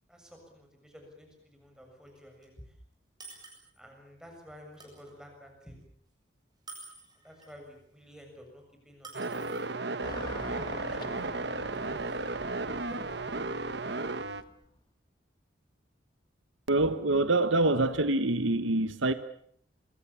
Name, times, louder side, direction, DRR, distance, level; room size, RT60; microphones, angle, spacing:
voice 1, 0.1-2.7 3.8-5.8 7.2-9.9 10.4-11.5 12.8-13.0, equal, 5° right, 3 dB, 6.9 m, -51 dB
sound 1, 2.1-2.2 2.4-2.5 3.2-3.7 4.7-5.1 6.7-7.5 9.0-9.6, right 3 dB, 20° right, 7.5 m, -48 dB
sound 2, 9.1-14.4, right 3 dB, 60° right, 1.2 m, -34 dB
Car passing by / Traffic noise roadway noise, 10.0-14.7, left 1 dB, 20° left, 1.6 m, -46 dB
voice 2, 16.7-19.1, right 2 dB, 85° right, 11 dB, 1.2 m, -25 dB
27.0 x 23.5 x 7.1 m, 0.66 s
head